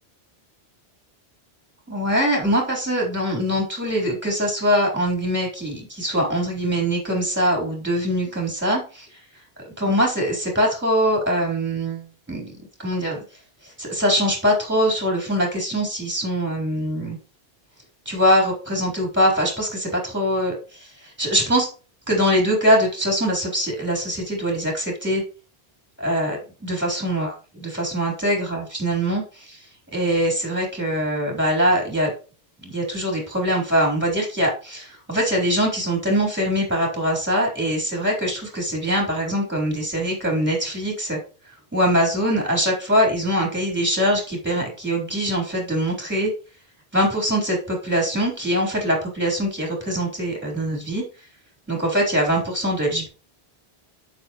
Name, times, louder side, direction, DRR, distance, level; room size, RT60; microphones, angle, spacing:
voice 1, 1.9-9.1 9.8-12.5 12.8-13.2 13.6-17.2 18.1-21.7 22.1-25.2 26.0-29.6 29.9-32.1 32.6-41.2 41.7-46.3 46.9-51.0 51.7-53.1, equal, 10° right, -1 dB, 3.9 m, -23 dB
9.0 x 7.1 x 3.1 m, 0.35 s
omnidirectional pair, 1.1 m